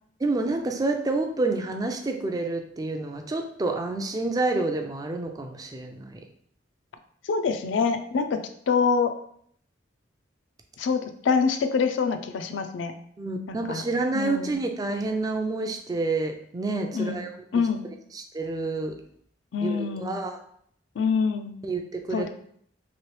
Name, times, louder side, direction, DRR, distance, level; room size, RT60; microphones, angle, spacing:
voice 1, 0.2-6.2 13.2-17.3 18.1-19.0 19.6-20.4 21.6-22.3, right 3 dB, 20° right, 4 dB, 0.3 m, -28 dB
voice 2, 7.3-8.4 8.7-9.1 10.8-12.9 13.5-13.8 14.1-14.6 16.9-17.3 17.5-17.8 19.5-20.2 21.0-21.5 22.1-22.3, left 5 dB, 80° left, 8 dB, 0.4 m, -25 dB
3.1 x 2.8 x 3.1 m, 0.65 s
head